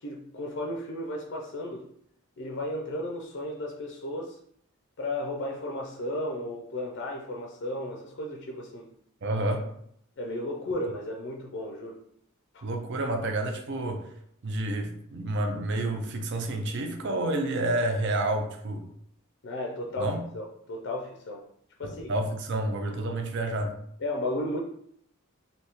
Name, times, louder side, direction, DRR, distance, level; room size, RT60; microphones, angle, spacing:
voice 1, 0.0-1.9 2.4-4.4 5.0-8.9 10.2-12.0 19.4-21.4 21.8-22.1 24.0-24.6, left 1 dB, 55° left, 0 dB, 0.4 m, -34 dB
voice 2, 9.2-9.6 12.6-14.1 14.4-18.9 20.0-20.2 21.8-23.7, right 1 dB, 55° right, 4 dB, 0.5 m, -29 dB
3.4 x 2.7 x 2.9 m, 0.68 s
head